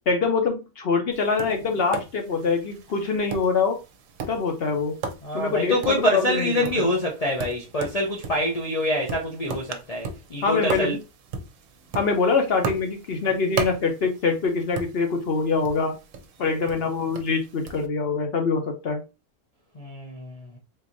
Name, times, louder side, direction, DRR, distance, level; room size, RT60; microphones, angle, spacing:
voice 1, 0.1-3.8 4.3-5.0 5.3-6.9 10.4-11.0 11.9-15.9 16.4-19.0, left 4 dB, 55° left, 0.7 m, -24 dB
Tap, 1.1-17.9, right 5 dB, 65° right, 0.9 m, -37 dB
voice 2, 5.2-11.0 19.8-20.6, left 1 dB, 85° left, 0.3 m, -26 dB
4.0 x 2.8 x 2.5 m
omnidirectional pair, 1.6 m